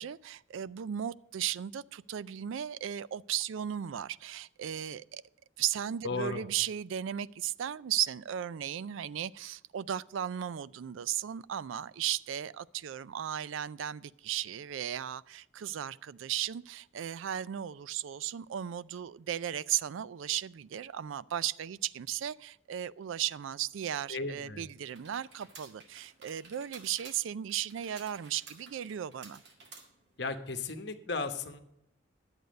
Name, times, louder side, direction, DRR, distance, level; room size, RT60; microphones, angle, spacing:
voice 1, 0.0-5.2 5.6-29.4, right 10 dB, 80° right, 0.4 m, -36 dB
voice 2, 6.0-6.4 24.1-24.7 30.2-31.6, left 3 dB, 60° left, 1.0 m, -35 dB
sound 1, 24.8-30.3, right 4 dB, 60° right, 2.0 m, -53 dB
11.5 x 8.0 x 5.2 m
head